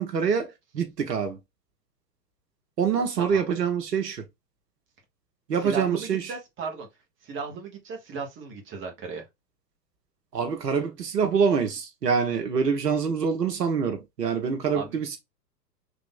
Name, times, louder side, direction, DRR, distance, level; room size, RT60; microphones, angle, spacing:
voice 1, 0.0-1.4 2.8-4.2 5.5-6.3 10.3-15.2, right 6 dB, 75° right, 1.1 m, -25 dB
voice 2, 5.6-6.9 7.2-9.2 14.7-15.0, right 5 dB, 25° right, 1.3 m, -36 dB
3.4 x 3.0 x 3.8 m
figure-of-eight pair, 110°, 50 cm